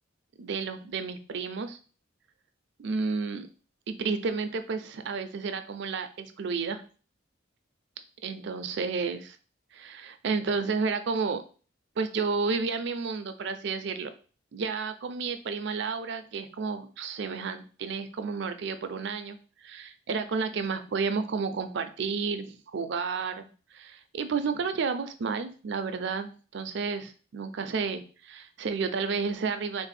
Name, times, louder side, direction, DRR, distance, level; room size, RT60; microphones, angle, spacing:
voice 1, 0.4-1.8 2.8-3.5 3.9-6.8 8.2-9.4 9.7-11.4 12.0-14.1 14.5-29.9, right 5 dB, 60° right, 9 dB, 0.4 m, -31 dB
3.5 x 2.6 x 4.1 m, 0.39 s
head